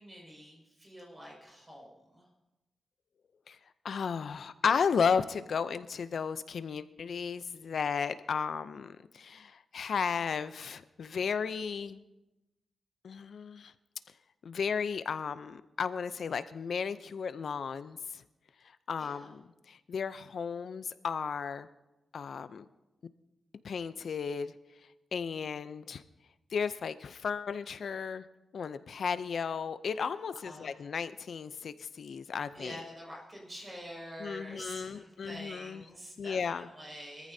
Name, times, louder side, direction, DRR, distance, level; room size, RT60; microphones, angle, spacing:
voice 1, 0.0-2.2 19.0-19.3 30.4-30.8 32.5-37.3, equal, 20° right, -3 dB, 5.8 m, -46 dB
voice 2, 3.8-12.0 13.0-13.7 14.4-18.2 18.9-21.7 22.1-22.7 23.6-24.5 25.1-26.0 26.5-28.2 28.5-32.8 34.2-35.9 36.2-36.7, left 6 dB, 65° left, 13 dB, 0.6 m, -34 dB
23.0 x 14.5 x 2.8 m, 1.0 s
wide cardioid pair, 115°, 0 cm